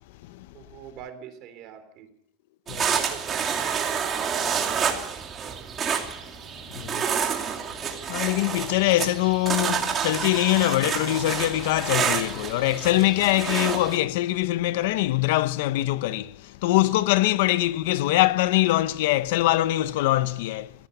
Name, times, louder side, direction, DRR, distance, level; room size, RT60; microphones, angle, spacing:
voice 1, 0.5-2.1 2.7-5.7, right 9 dB, 40° right, 3.7 m, -44 dB
sound 1, 2.7-14.0, right 7 dB, 20° right, 2.7 m, -28 dB
voice 2, 6.7-7.1 8.1-20.7, left 16 dB, 70° left, 0.8 m, -23 dB
24.0 x 16.5 x 6.8 m
supercardioid pair, 175°, 0 cm